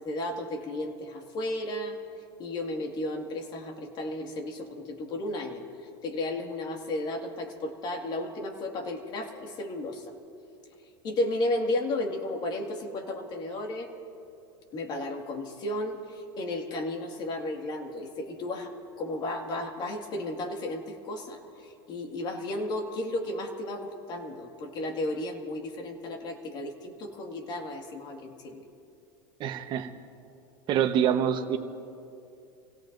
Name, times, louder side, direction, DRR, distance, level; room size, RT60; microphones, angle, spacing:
voice 1, 0.0-2.0 2.4-5.6 6.0-10.1 11.0-13.9 14.7-18.7 19.0-28.6, left 1 dB, 40° left, 3 dB, 2.0 m, -33 dB
voice 2, 29.4-29.9 30.7-31.6, right 9 dB, 40° right, 7 dB, 1.1 m, -25 dB
28.5 x 17.0 x 2.6 m, 2.6 s
supercardioid pair, 135°, 12 cm